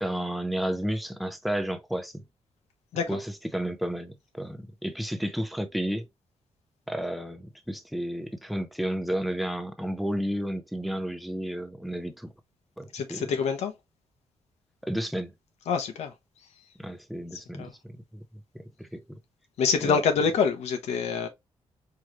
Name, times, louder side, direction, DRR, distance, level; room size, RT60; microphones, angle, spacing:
voice 1, 0.0-2.2 3.1-3.3 3.5-6.1 6.9-12.3 12.8-13.3 14.8-15.3 16.8-18.2 18.5-19.2 19.8-20.0, right 1 dB, ahead, 0.7 m, -32 dB
voice 2, 2.9-3.2 12.9-13.7 15.6-16.1 17.6-17.7 19.6-21.3, left 6 dB, 85° left, 1.0 m, -26 dB
4.6 x 3.1 x 3.0 m
cardioid pair, 130°, 11 cm